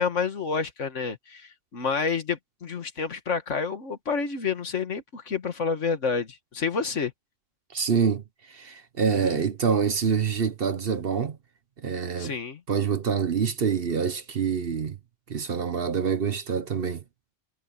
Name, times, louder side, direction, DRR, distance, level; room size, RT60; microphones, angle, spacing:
voice 1, 0.0-7.1 9.1-9.4 12.2-12.6, left 5 dB, 65° left, 1.9 m, -29 dB
voice 2, 7.7-11.4 11.8-12.3 12.7-15.0 15.3-17.0, right 6 dB, 50° right, 1.0 m, -26 dB
omnidirectional pair, 1.3 m